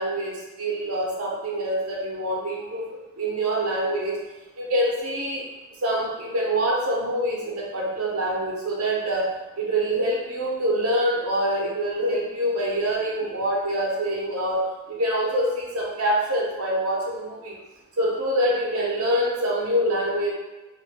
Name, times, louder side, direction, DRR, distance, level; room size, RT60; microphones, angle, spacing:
voice 1, 0.0-4.2 4.6-5.4 5.8-9.3 9.6-17.6 18.0-20.3, right 1 dB, 85° right, -3 dB, 0.7 m, -25 dB
2.6 x 2.1 x 3.2 m, 1.1 s
head